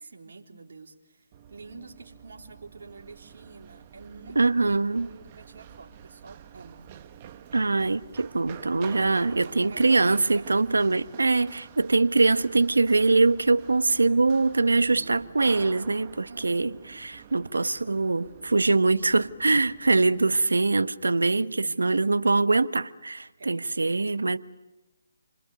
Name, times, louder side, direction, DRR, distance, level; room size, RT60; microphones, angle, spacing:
voice 1, 0.0-6.9 9.2-10.5 14.7-15.6 16.3-17.0 21.4-22.3 23.4-23.8, right 4 dB, 65° right, 3.8 m, -47 dB
Run, 1.3-20.4, right 9 dB, 35° right, 1.3 m, -48 dB
voice 2, 4.3-5.1 7.5-24.4, right 3 dB, 85° right, 1.2 m, -23 dB
29.0 x 26.0 x 7.0 m
figure-of-eight pair, 150°, 0 cm